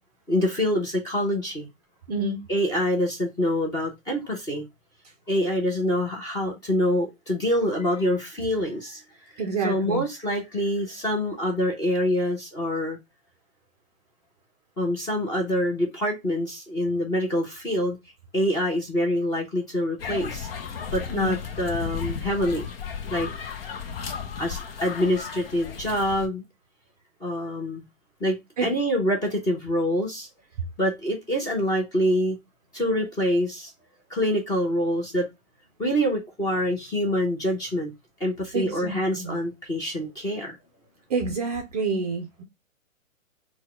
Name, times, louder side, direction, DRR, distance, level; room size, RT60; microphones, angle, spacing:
voice 1, 0.3-1.7 2.5-4.6 5.3-9.0 9.6-13.0 14.8-18.0 18.3-20.5 20.9-22.6 23.1-23.3 24.4-26.4 27.2-27.8 28.2-30.3 30.8-32.4 32.7-33.7 34.1-35.3 35.8-37.9 38.2-40.5, equal, 10° left, 0.8 m, -25 dB
voice 2, 2.1-2.5 9.4-10.0 21.1-21.4 28.6-28.7 38.5-39.4 41.1-42.4, right 4 dB, 30° right, 0.6 m, -28 dB
sound 1, 20.0-26.3, left 6 dB, 45° left, 0.9 m, -34 dB
4.5 x 2.3 x 4.8 m
hypercardioid pair, 140°, 41 cm